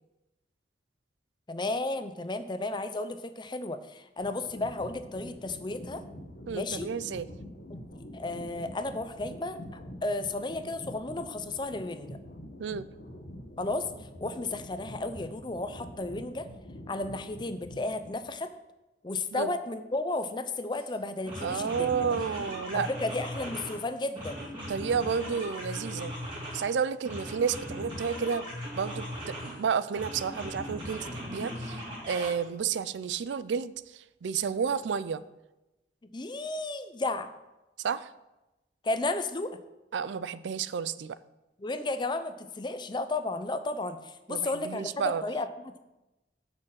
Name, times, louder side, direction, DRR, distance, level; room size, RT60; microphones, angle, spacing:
voice 1, 1.5-6.0 6.5-6.9 7.7-12.2 13.6-16.5 16.9-18.5 19.0-21.9 22.7-24.5 36.0-37.4 38.8-39.6 41.6-45.8, left 2 dB, 25° left, 10 dB, 0.5 m, -33 dB
sound 1, 4.2-18.4, equal, 55° left, 1.4 m, -45 dB
voice 2, 6.5-7.3 12.6-12.9 19.3-19.5 21.4-22.9 24.7-26.1 26.5-28.5 28.7-31.8 32.1-35.2 37.8-38.1 39.9-41.1 44.3-45.2, right 6 dB, 90° right, 16 dB, 0.4 m, -31 dB
sound 2, 20.7-20.9 21.3-23.8 24.1-26.7 27.0-29.6 29.9-32.3, equal, 30° right, 2.8 m, -39 dB
6.4 x 6.3 x 7.4 m, 1.0 s
head